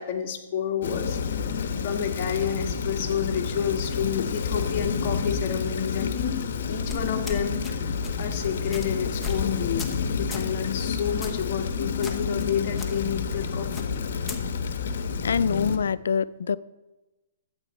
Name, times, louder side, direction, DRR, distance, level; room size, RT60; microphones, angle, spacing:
voice 1, 0.0-6.4 6.7-9.8 10.1-13.9, left 8 dB, 40° left, 2 dB, 1.7 m, -30 dB
Rain, 0.8-15.8, left 5 dB, 65° left, 1.1 m, -29 dB
sound 1, 6.9-7.7 8.0-8.2 8.7-8.9 9.2-9.5 9.8-10.0 10.3-10.5 11.2-11.5 12.0-12.5 12.8-12.9 13.7-14.4, left 4 dB, 10° left, 1.0 m, -36 dB
voice 2, 15.2-16.6, left 6 dB, 80° left, 18 dB, 0.4 m, -25 dB
12.0 x 9.0 x 4.3 m, 1.1 s
hypercardioid pair, 150°, 0 cm